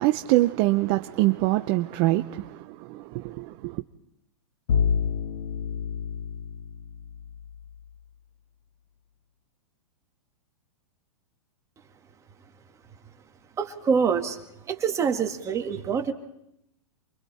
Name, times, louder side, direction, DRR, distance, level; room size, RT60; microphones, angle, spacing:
voice 1, 0.0-3.8, right 18 dB, 35° right, 0.7 m, -24 dB
Bowed string instrument, 4.7-7.8, left 6 dB, 75° left, 1.4 m, -28 dB
voice 2, 13.6-14.4 14.7-16.1, right 6 dB, 15° right, 1.8 m, -25 dB
28.5 x 23.5 x 4.3 m
hypercardioid pair, 140°, 17 cm